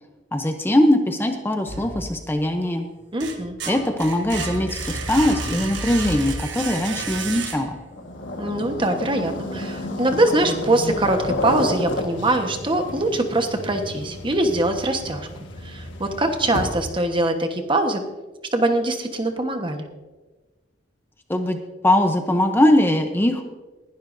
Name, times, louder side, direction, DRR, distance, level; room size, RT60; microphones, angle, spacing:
voice 1, 0.3-2.9 3.7-7.8 21.3-21.6 21.8-23.4, left 1 dB, 10° left, 5 dB, 0.7 m, -21 dB
sound 1, 1.7-2.5 2.9-8.0, right 3 dB, 80° right, 1.4 m, -31 dB
voice 2, 3.1-3.6 8.4-15.3 15.6-18.0 18.5-19.9, right 1 dB, 25° right, 5 dB, 1.2 m, -23 dB
sound 2, 7.9-17.0, left 1 dB, 90° left, 1.5 m, -31 dB
20.5 x 11.0 x 2.7 m, 1.2 s
head